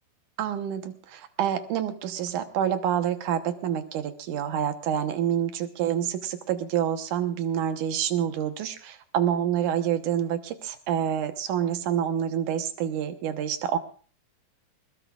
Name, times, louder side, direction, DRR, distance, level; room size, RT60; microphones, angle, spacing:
voice 1, 0.4-13.8, right 9 dB, 65° right, 8 dB, 2.1 m, -27 dB
21.5 x 21.0 x 2.4 m, 0.39 s
omnidirectional pair, 4.7 m